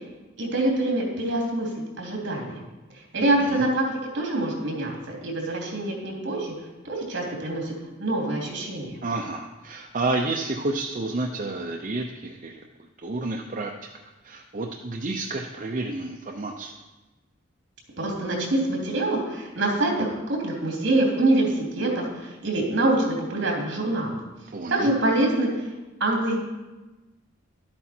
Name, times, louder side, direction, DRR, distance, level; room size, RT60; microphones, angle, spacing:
voice 1, 0.4-1.7 2.0-2.6 3.1-6.5 6.8-7.7 8.0-9.0 18.0-24.2 24.7-25.7 26.0-26.4, right 2 dB, 65° right, -1 dB, 3.0 m, -25 dB
voice 2, 3.2-3.6 9.0-12.6 13.0-13.7 14.2-16.7 24.5-24.9, right 2 dB, 40° right, 1 dB, 0.7 m, -30 dB
11.5 x 8.7 x 4.4 m, 1.1 s
head